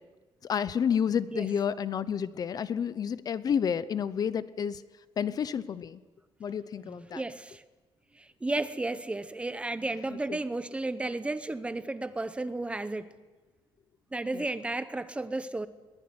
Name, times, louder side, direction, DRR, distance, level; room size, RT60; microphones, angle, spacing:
voice 1, 0.4-4.8 5.2-6.0 6.4-7.2 10.3-10.4 14.3-14.4, left 7 dB, 40° left, 16 dB, 0.7 m, -30 dB
voice 2, 6.8-7.6 8.2-13.1 14.1-15.7, right 2 dB, 10° right, 13 dB, 0.9 m, -33 dB
22.5 x 20.0 x 9.7 m, 1.2 s
cardioid pair, 170°, 10 cm